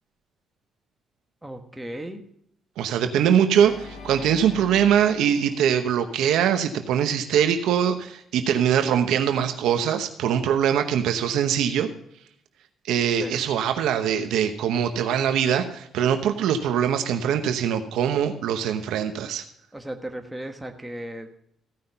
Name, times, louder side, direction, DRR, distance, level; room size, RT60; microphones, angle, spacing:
voice 1, 1.4-2.2 13.2-13.3 19.7-21.3, right 1 dB, 10° right, 4 dB, 1.3 m, -35 dB
voice 2, 2.8-11.9 12.9-19.4, right 9 dB, 85° right, 7 dB, 0.9 m, -22 dB
Organ, 3.5-6.7, left 3 dB, 55° left, 3.9 m, -43 dB
15.0 x 5.7 x 5.4 m, 0.70 s
cardioid pair, 90°, 0 cm